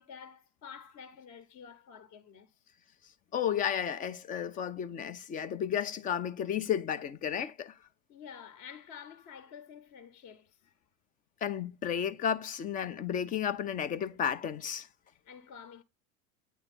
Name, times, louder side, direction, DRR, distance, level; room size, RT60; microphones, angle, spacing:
voice 1, 0.0-2.6 8.1-10.7 15.1-15.8, left 7 dB, 35° left, 0.9 m, -50 dB
voice 2, 3.3-7.7 11.4-14.9, left 8 dB, 20° left, 0.4 m, -32 dB
9.0 x 3.0 x 6.0 m
hypercardioid pair, 95°, 43 cm